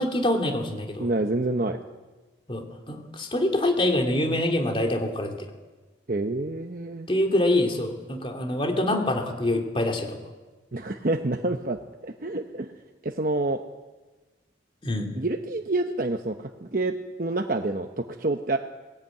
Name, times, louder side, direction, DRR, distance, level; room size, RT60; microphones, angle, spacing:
voice 1, 0.0-1.1 2.5-5.4 7.1-10.2 14.8-15.1, left 1 dB, 30° left, 3 dB, 2.7 m, -25 dB
voice 2, 1.0-1.8 6.1-7.1 10.7-12.7 13.0-13.6 15.2-18.6, right 2 dB, 50° right, 4 dB, 0.9 m, -28 dB
19.0 x 16.5 x 9.1 m, 1.2 s
head